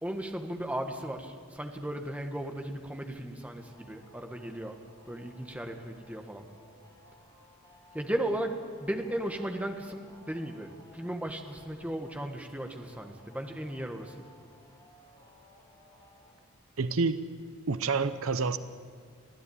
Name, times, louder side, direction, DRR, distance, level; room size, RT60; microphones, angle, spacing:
voice 1, 0.0-4.8 5.1-6.5 7.9-14.2, right 1 dB, 5° right, 4 dB, 1.5 m, -36 dB
sound 1, 3.6-16.4, equal, 15° left, 3.4 m, -59 dB
voice 2, 16.8-17.2 17.7-18.6, right 4 dB, 65° right, 12 dB, 0.8 m, -28 dB
23.5 x 15.5 x 8.7 m, 2.1 s
head